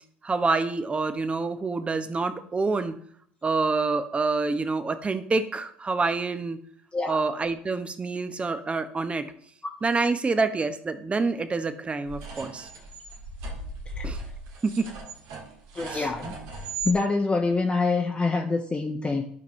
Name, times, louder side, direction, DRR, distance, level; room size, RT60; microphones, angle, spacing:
voice 1, 0.2-2.9 3.4-6.6 7.1-9.3 9.8-12.7 14.0-14.2 14.6-14.9 15.9-16.1, right 3 dB, 20° right, 11 dB, 0.9 m, -27 dB
sound 1, 12.1-17.0, right 3 dB, 65° right, 1.7 m, -37 dB
voice 2, 15.7-16.3 16.8-19.2, left 3 dB, 20° left, 1 dB, 1.0 m, -25 dB
12.0 x 5.3 x 3.2 m, 0.62 s
hypercardioid pair, 65°, 5 cm